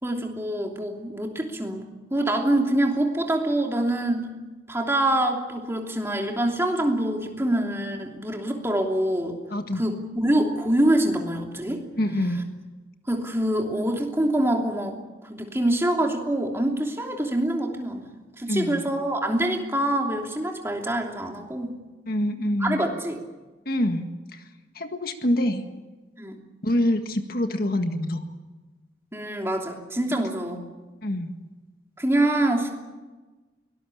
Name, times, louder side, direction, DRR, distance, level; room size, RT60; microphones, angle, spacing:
voice 1, 0.0-4.3 4.7-9.4 9.7-11.8 13.1-15.0 15.3-21.8 22.6-23.2 26.2-26.4 29.1-30.6 32.0-32.7, right 1 dB, 15° right, 2 dB, 3.0 m, -25 dB
voice 2, 9.5-9.8 12.0-12.5 18.5-18.9 22.1-22.8 23.6-24.4 24.7-25.6 26.6-28.3 31.0-31.3, left 1 dB, 50° left, 6 dB, 1.7 m, -26 dB
23.5 x 19.5 x 8.6 m, 1.2 s
head